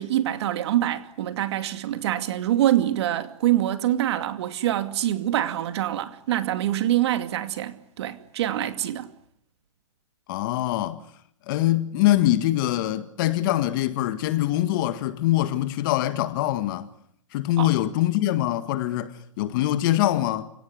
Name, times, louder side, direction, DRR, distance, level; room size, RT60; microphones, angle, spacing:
voice 1, 0.0-9.1 17.6-17.7, right 12 dB, 55° right, 2.5 m, -25 dB
voice 2, 10.3-11.0 11.5-16.9 17.3-20.5, left 14 dB, 40° left, 1.8 m, -23 dB
29.5 x 17.5 x 9.8 m
hypercardioid pair, 155°, 17 cm